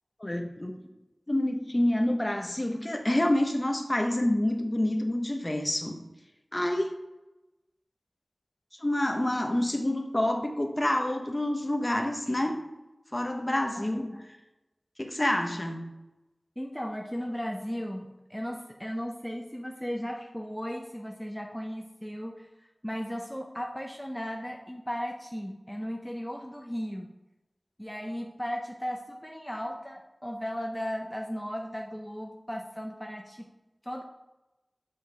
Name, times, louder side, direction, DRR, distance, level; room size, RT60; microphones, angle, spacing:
voice 1, 0.2-0.8 1.3-6.0 6.5-6.9 8.8-12.6 13.1-14.1 15.0-15.9, left 1 dB, 30° left, 4 dB, 1.0 m, -27 dB
voice 2, 13.8-14.2 16.6-22.5 22.8-27.1 27.8-33.5 33.8-34.0, equal, 5° left, 1 dB, 0.6 m, -36 dB
7.5 x 6.1 x 3.4 m, 1.0 s
wide cardioid pair, 55°, 0 cm